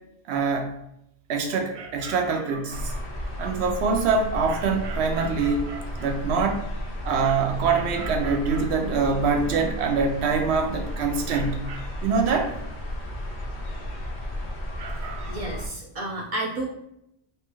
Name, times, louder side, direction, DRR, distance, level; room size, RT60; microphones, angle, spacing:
voice 1, 0.3-0.7 1.3-3.0 3.4-6.6 7.0-12.5 14.8-15.3, right 5 dB, 80° right, 4 dB, 0.8 m, -25 dB
sound 1, 2.7-15.7, left 1 dB, 85° left, 0.9 m, -33 dB
voice 2, 15.3-16.7, right 2 dB, 45° right, -1 dB, 0.5 m, -31 dB
3.1 x 2.3 x 3.0 m, 0.79 s
omnidirectional pair, 1.1 m